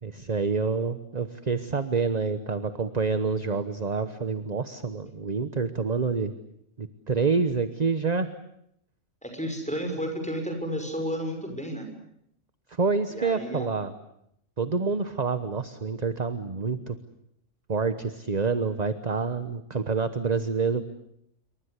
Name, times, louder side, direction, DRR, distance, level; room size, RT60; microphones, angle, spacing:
voice 1, 0.0-6.3 6.8-8.3 12.7-13.9 14.6-17.0 17.7-20.8, right 4 dB, 35° right, 11 dB, 1.2 m, -27 dB
voice 2, 9.2-11.9 13.1-13.7, equal, 5° left, 4 dB, 6.4 m, -32 dB
28.0 x 24.0 x 8.3 m, 0.74 s
omnidirectional pair, 1.3 m